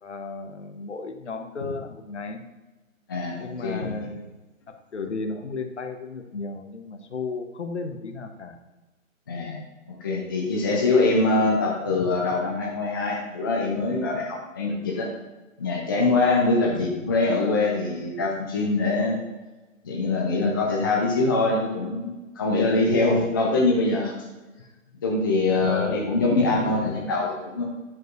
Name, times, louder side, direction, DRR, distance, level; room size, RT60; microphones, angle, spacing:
voice 1, 0.0-2.5 3.4-4.3 4.7-8.6 16.5-16.8 25.6-26.0, left 3 dB, 55° left, 7 dB, 1.0 m, -34 dB
voice 2, 3.6-3.9 9.3-9.6 9.9-15.1 15.6-19.2 19.8-24.1 25.0-27.6, left 3 dB, 15° left, -1 dB, 0.6 m, -23 dB
9.6 x 7.5 x 2.6 m, 1.2 s
figure-of-eight pair, 140°, 41 cm